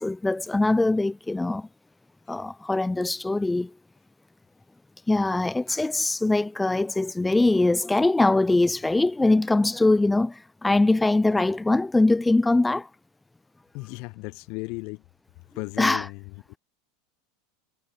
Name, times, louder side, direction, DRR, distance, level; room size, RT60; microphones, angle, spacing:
voice 1, 0.0-1.7 2.3-3.7 5.1-12.9 15.8-16.1, left 2 dB, 10° left, 0.4 m, -22 dB
voice 2, 13.7-15.0 15.6-16.2, left 29 dB, 60° left, 3.9 m, -35 dB
hypercardioid pair, 90°, 0 cm